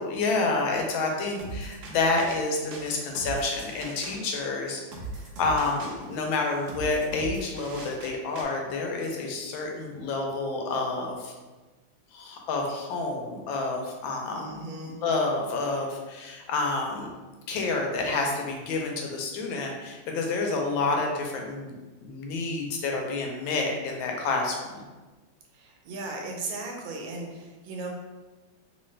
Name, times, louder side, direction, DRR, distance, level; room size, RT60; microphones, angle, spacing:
voice 1, 0.0-4.8 5.4-11.3 12.1-14.6 15.0-17.1 17.5-21.7 22.0-24.8, left 3 dB, 85° left, 1 dB, 1.4 m, -29 dB
sound 1, 1.4-8.4, right 2 dB, 70° right, 1.1 m, -40 dB
voice 2, 14.3-14.9 25.5-27.9, right 2 dB, 85° right, 0 dB, 1.5 m, -37 dB
3.2 x 2.8 x 3.2 m, 1.2 s
omnidirectional pair, 2.1 m